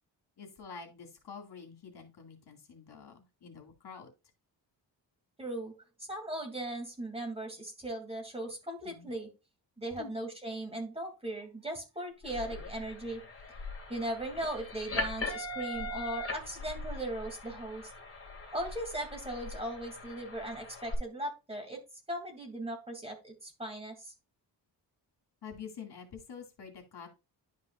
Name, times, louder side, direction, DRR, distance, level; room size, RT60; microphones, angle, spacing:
voice 1, 0.4-4.1 8.8-9.1 10.0-10.1 25.4-27.1, left 6 dB, 70° left, 4 dB, 2.3 m, -47 dB
voice 2, 5.4-5.7 6.0-9.3 9.8-13.2 13.9-17.9 18.5-21.8 22.1-24.1, right 1 dB, 15° right, 3 dB, 2.8 m, -38 dB
sound 1, 12.2-20.9, left 2 dB, 30° left, 2.5 m, -41 dB
11.0 x 5.4 x 2.5 m, 0.27 s
wide cardioid pair, 105°, 41 cm